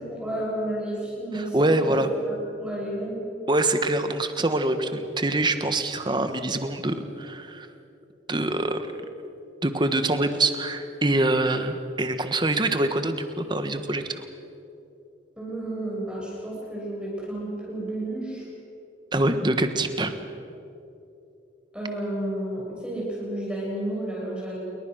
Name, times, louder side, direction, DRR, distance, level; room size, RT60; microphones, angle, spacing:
voice 1, 0.1-3.2 15.4-18.4 21.7-24.6, right 1 dB, 5° right, -5 dB, 7.2 m, -31 dB
voice 2, 1.3-2.1 3.5-7.7 8.3-8.8 9.6-14.2 19.1-20.1, right 2 dB, 25° right, 8 dB, 1.5 m, -25 dB
28.5 x 22.5 x 6.4 m, 2.7 s
head